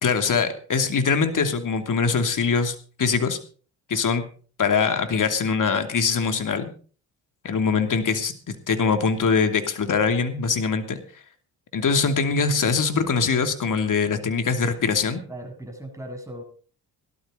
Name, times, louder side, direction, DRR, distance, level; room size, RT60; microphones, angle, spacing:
voice 1, 0.0-3.4 3.9-4.2 4.6-6.7 7.4-11.0 11.7-15.2, left 5 dB, 50° left, 8 dB, 2.9 m, -23 dB
voice 2, 15.3-16.4, right 1 dB, 10° right, 2 dB, 7.0 m, -37 dB
17.5 x 12.5 x 4.0 m, 0.40 s
supercardioid pair, 60°, 40 cm